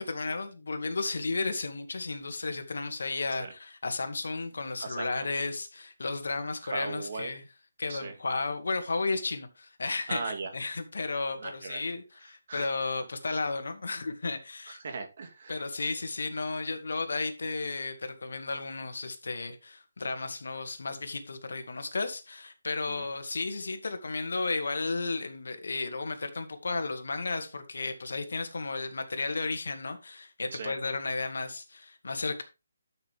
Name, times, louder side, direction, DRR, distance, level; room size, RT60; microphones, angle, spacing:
voice 1, 0.0-7.4 7.8-10.2 10.5-14.8 15.5-32.4, left 3 dB, 75° left, 2.1 m, -33 dB
voice 2, 4.8-5.3 6.6-7.3 7.9-8.1 10.1-10.5 11.4-11.8 12.5-12.7 14.7-15.6 22.9-23.1 30.5-30.7, right 4 dB, 40° right, 2.3 m, -38 dB
12.0 x 6.4 x 3.5 m
hypercardioid pair, 175°, 0 cm